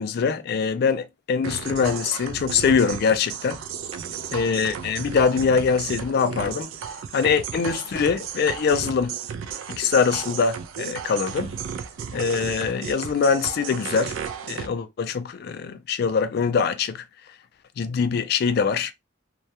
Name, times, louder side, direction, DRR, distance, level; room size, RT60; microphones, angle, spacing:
voice 1, 0.0-3.6 4.3-6.7 7.1-9.2 9.7-11.5 12.1-14.2 14.5-17.0 17.8-18.9, left 5 dB, 50° left, 0.3 m, -23 dB
sound 1, 1.4-14.7, right 7 dB, 85° right, 0.3 m, -34 dB
2.2 x 2.1 x 2.7 m
head